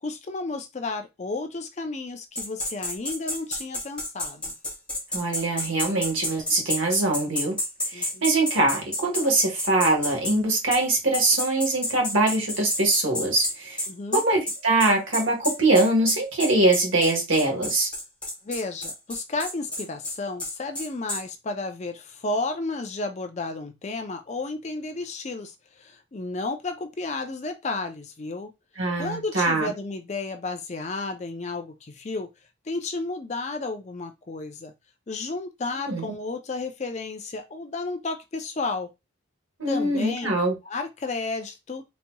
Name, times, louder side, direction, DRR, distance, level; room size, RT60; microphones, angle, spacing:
voice 1, 0.0-4.5 7.9-8.2 13.9-14.2 18.4-28.5 29.0-32.3 32.7-34.7 35.1-38.9 39.7-40.4 40.6-41.8, left 3 dB, 35° left, 0.4 m, -32 dB
sound 1, 2.4-10.4 10.7-10.8 11.1-21.2, left 1 dB, 5° left, 0.8 m, -30 dB
voice 2, 5.1-7.6 7.9-13.8 14.1-17.9 28.8-29.7 35.9-36.1 39.6-40.5, right 2 dB, 75° right, 1.4 m, -23 dB
4.1 x 2.8 x 2.2 m
head